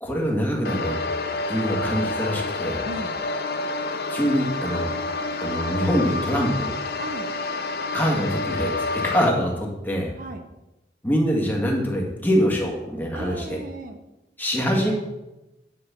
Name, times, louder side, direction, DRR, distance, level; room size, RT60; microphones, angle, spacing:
voice 1, 0.0-0.9 1.5-2.8 4.1-4.9 5.4-6.7 7.9-10.1 11.0-13.6 14.4-14.9, equal, 10° left, -1 dB, 1.9 m, -24 dB
sound 1, 0.6-9.3, left 3 dB, 60° left, 0.7 m, -28 dB
voice 2, 2.8-3.1 7.0-7.3 10.2-10.4 13.1-14.0, right 1 dB, 50° right, 6 dB, 0.8 m, -35 dB
9.8 x 5.5 x 7.0 m, 1.0 s
head